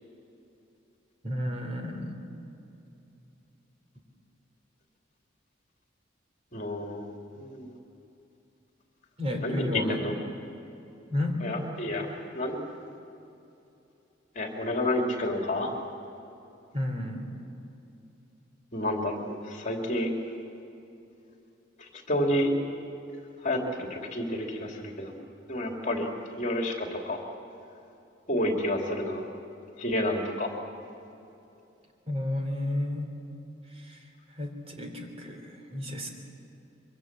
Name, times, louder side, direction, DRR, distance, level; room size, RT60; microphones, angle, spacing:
voice 1, 1.2-2.2 9.2-10.0 11.1-11.4 16.7-17.2 32.1-33.1 33.7-36.1, left 1 dB, 30° right, 3 dB, 3.4 m, -32 dB
voice 2, 6.5-7.1 7.4-7.7 9.4-9.6 10.0-10.1 11.4-12.1 12.3-12.6 14.3-15.7 18.7-20.1 22.1-22.5 23.4-23.6 23.9-25.1 25.5-26.1 26.4-27.2 28.3-29.2 29.8-30.5, left 1 dB, 40° left, 1 dB, 2.9 m, -29 dB
25.5 x 23.5 x 7.5 m, 2.8 s
head